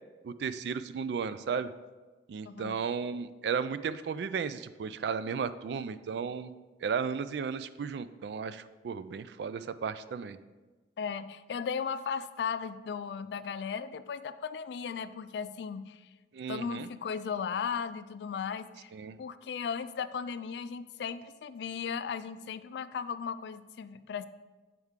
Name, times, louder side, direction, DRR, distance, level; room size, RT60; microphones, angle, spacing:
voice 1, 0.2-1.7 2.3-6.5 6.8-10.4 16.3-16.9 18.9-19.2, right 6 dB, 70° right, 13 dB, 0.3 m, -34 dB
voice 2, 11.0-16.0 16.5-18.9 19.2-24.3, left 6 dB, 70° left, 13 dB, 0.3 m, -36 dB
8.0 x 4.6 x 3.6 m, 1.2 s
head